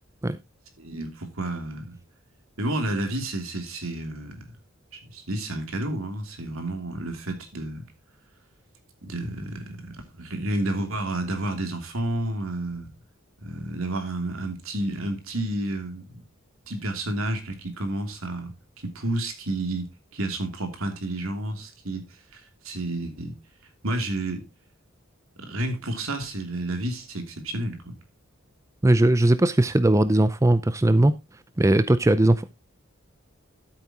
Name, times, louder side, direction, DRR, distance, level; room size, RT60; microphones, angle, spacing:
voice 1, 0.8-2.0 2.6-4.5 4.9-7.8 9.0-12.9 13.4-16.2 16.7-18.5 18.8-22.1 22.3-23.4 23.8-24.5 25.4-28.0, right 1 dB, 85° right, 2.9 m, -30 dB
voice 2, 28.8-31.1 31.6-32.4, right 1 dB, 15° right, 0.5 m, -19 dB
13.0 x 8.4 x 2.9 m
head